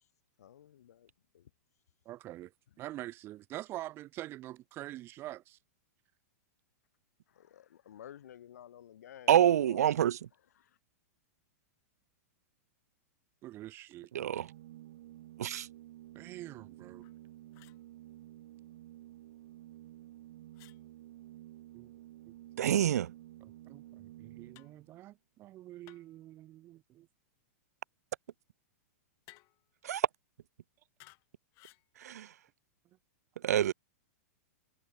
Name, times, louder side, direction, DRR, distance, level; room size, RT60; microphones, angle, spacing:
voice 1, 0.4-1.5 7.3-9.9 10.6-10.8, left 10 dB, 80° left, 1.5 m, -53 dB
voice 2, 2.1-2.5 2.8-5.6 13.4-14.1 16.1-17.1 21.7-21.9 22.3-22.4 23.4-27.1, right 15 dB, 30° right, 1.7 m, -45 dB
voice 3, 9.3-10.2 14.1-14.5 15.4-15.7 22.6-23.1 29.8-30.0 32.0-32.3 33.4-33.7, right 11 dB, 85° right, 0.6 m, -26 dB
Organ, 14.3-25.0, right 14 dB, 60° right, 1.4 m, -52 dB
sound 1, 17.0-17.2 17.5-17.8 20.5-20.8 22.7-23.1 24.5-24.8 25.9-26.2 29.3-29.7 31.0-31.3 31.5-31.9, left 26 dB, 35° left, 1.8 m, -59 dB
hypercardioid pair, 150°, 8 cm